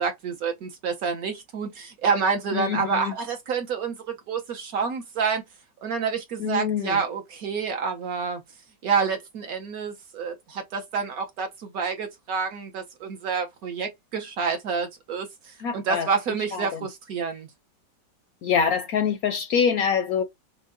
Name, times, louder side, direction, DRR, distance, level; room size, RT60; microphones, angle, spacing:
voice 1, 0.0-5.4 5.8-8.4 8.8-17.5, right 5 dB, 65° right, 1.1 m, -28 dB
voice 2, 2.5-3.1 6.4-7.0 15.6-16.1 16.5-16.9 18.4-20.2, left 7 dB, 70° left, 0.9 m, -25 dB
6.3 x 2.2 x 2.5 m
omnidirectional pair, 1.9 m